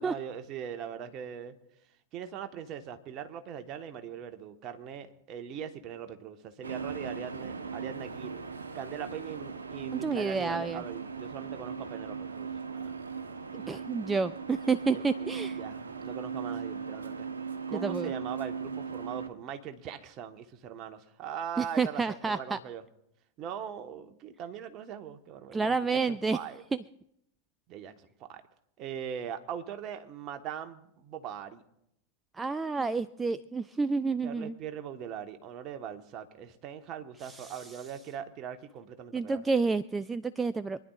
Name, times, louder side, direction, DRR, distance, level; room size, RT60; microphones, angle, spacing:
voice 1, 0.0-1.5 2.1-8.4 8.7-13.3 13.6-13.7 15.2-17.3 17.7-22.8 23.4-25.8 26.1-26.6 27.7-27.9 28.3-28.4 28.8-31.6 34.2-39.4, right 8 dB, 40° right, 7 dB, 1.3 m, -41 dB
sound 1, 6.6-19.3, right 5 dB, 80° right, 1.0 m, -38 dB
voice 2, 9.9-10.8 13.5-15.6 17.7-18.1 21.6-22.6 25.5-26.4 32.4-34.5 37.2-37.7 39.1-40.8, right 4 dB, 15° right, 14 dB, 0.4 m, -30 dB
27.0 x 10.5 x 2.4 m, 0.78 s
figure-of-eight pair, 95°, 0 cm